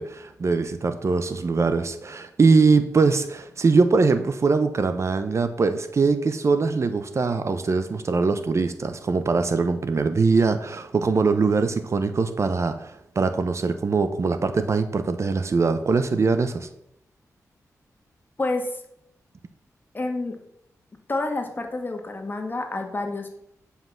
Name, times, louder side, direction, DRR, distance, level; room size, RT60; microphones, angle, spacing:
voice 1, 0.0-16.7, right 4 dB, 50° right, 9 dB, 0.9 m, -22 dB
voice 2, 18.4-18.8 19.9-20.4 21.1-23.3, left 2 dB, 35° left, 4 dB, 1.7 m, -28 dB
9.6 x 5.8 x 5.9 m, 0.77 s
wide cardioid pair, 85°, 6 cm